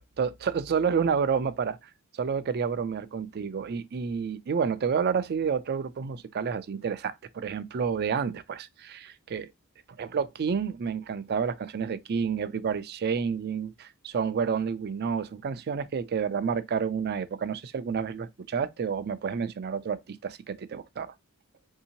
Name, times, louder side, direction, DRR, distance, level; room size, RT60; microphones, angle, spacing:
voice 1, 0.2-1.8 2.1-9.5 10.0-21.1, right 6 dB, 45° right, 0.4 m, -29 dB
3.5 x 2.7 x 2.7 m
head